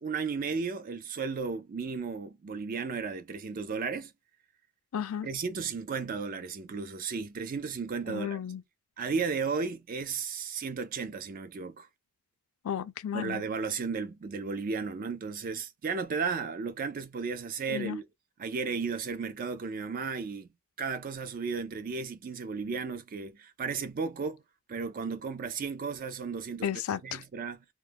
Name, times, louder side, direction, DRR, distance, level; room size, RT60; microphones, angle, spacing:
voice 1, 0.0-4.1 5.2-8.4 9.0-11.9 13.1-18.1 18.4-20.5 20.8-24.4 24.7-26.7 27.0-27.6, right 5 dB, 40° right, 0.4 m, -34 dB
voice 2, 4.9-5.3 8.1-8.6 12.6-13.4 17.7-18.0 26.6-27.2, left 9 dB, 70° left, 0.4 m, -33 dB
2.2 x 2.1 x 3.3 m
head